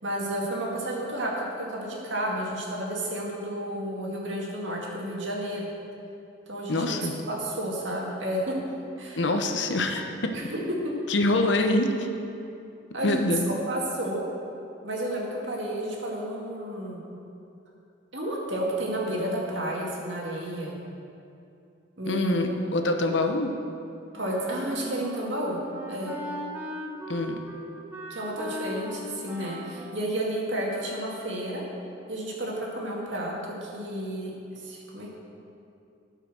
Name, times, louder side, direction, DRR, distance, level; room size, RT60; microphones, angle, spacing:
voice 1, 0.0-5.7 6.5-8.6 9.0-9.3 10.3-10.6 12.9-14.2 14.8-17.0 18.1-20.7 22.0-22.5 24.1-25.6 25.9-26.2 28.1-31.6 32.1-34.3 34.6-35.1, right 1 dB, 75° right, -3 dB, 2.1 m, -31 dB
voice 2, 6.7-7.1 9.2-10.3 11.1-12.1 13.0-13.5 22.1-23.5 27.1-27.4, left 2 dB, 70° left, 5 dB, 0.9 m, -25 dB
Wind instrument woodwind instrument, 24.1-31.2, equal, 10° right, 1.0 m, -40 dB
13.0 x 5.6 x 6.2 m, 2.7 s
head